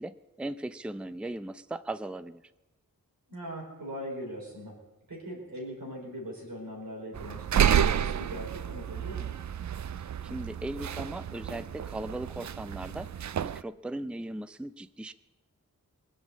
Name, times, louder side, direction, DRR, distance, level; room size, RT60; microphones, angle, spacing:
voice 1, 0.0-2.4 10.2-13.1 13.4-15.1, right 1 dB, 5° right, 13 dB, 0.5 m, -38 dB
voice 2, 3.3-4.8 5.1-9.4, equal, 85° right, -2 dB, 5.0 m, -40 dB
sound 1, 7.1-13.6, right 9 dB, 60° right, 0.4 m, -30 dB
20.5 x 7.6 x 8.4 m, 1.1 s
wide cardioid pair, 60°, 33 cm